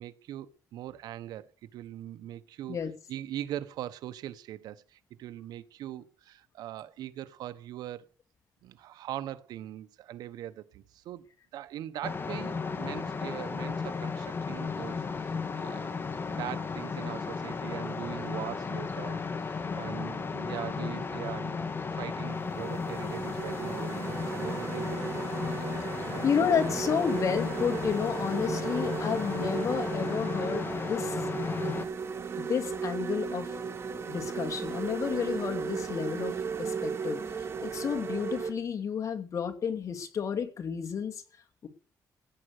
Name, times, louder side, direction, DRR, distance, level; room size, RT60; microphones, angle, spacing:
voice 1, 0.0-2.8 3.1-8.0 8.6-11.2 11.5-16.0 16.3-21.6 21.9-26.3, right 12 dB, 85° right, 1.1 m, -41 dB
sound 1, 12.0-31.9, left 5 dB, 35° left, 2.3 m, -34 dB
voice 2, 19.5-19.9 26.2-31.3 32.4-33.5 34.1-37.2 37.6-41.2 41.6-41.7, left 7 dB, 55° left, 2.6 m, -31 dB
sound 2, 21.6-21.8 22.3-38.5, right 5 dB, 40° right, 3.3 m, -35 dB
16.0 x 9.0 x 6.7 m
cardioid pair, 95°, 7 cm